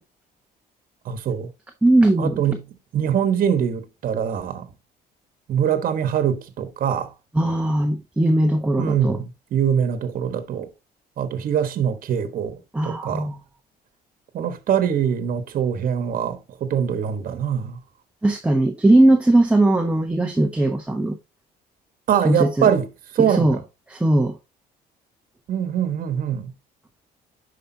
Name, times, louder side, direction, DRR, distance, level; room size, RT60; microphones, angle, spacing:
voice 1, 1.0-1.5 2.2-2.7 2.9-4.7 5.5-7.1 8.7-10.7 11.2-13.3 14.3-17.8 22.1-22.9 23.1-23.6 25.5-26.5, right 8 dB, 55° right, 1.3 m, -23 dB
voice 2, 1.8-2.4 7.3-9.2 12.7-13.4 18.2-21.2 22.2-22.7 23.3-23.6 23.9-24.4, right 1 dB, 5° right, 1.0 m, -19 dB
10.0 x 5.1 x 2.8 m
cardioid pair, 110°, 17 cm